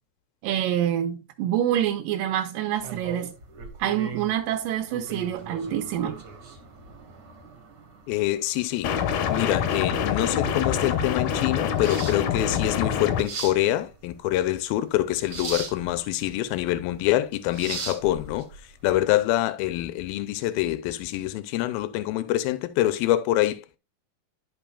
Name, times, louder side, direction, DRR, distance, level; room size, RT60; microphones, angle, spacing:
voice 1, 0.4-3.3 3.8-6.2, right 11 dB, 75° right, 2.3 m, -26 dB
sound 1, 2.8-19.0, right 4 dB, 50° right, 1.8 m, -40 dB
voice 2, 8.1-8.9 9.3-18.5 18.8-23.8, left 15 dB, 90° left, 2.4 m, -25 dB
sound 2, 8.8-13.2, left 7 dB, 70° left, 2.0 m, -26 dB
12.0 x 5.4 x 2.3 m
omnidirectional pair, 4.2 m